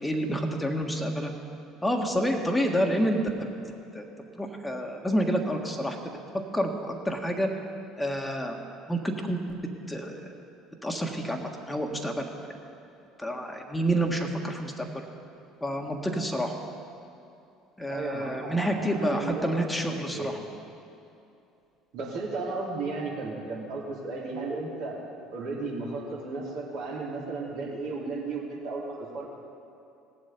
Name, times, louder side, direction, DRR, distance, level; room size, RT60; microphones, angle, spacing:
voice 1, 0.0-1.4 1.8-3.5 3.9-4.0 4.3-7.5 8.0-8.6 8.9-10.4 10.8-12.3 13.2-15.0 15.6-16.6 17.8-20.4, equal, 10° left, 2 dB, 1.6 m, -29 dB
voice 2, 17.9-20.3 21.9-25.0 25.3-29.2, right 3 dB, 65° right, -6 dB, 3.8 m, -34 dB
18.5 x 7.4 x 5.4 m, 2.6 s
figure-of-eight pair, 60°, 0 cm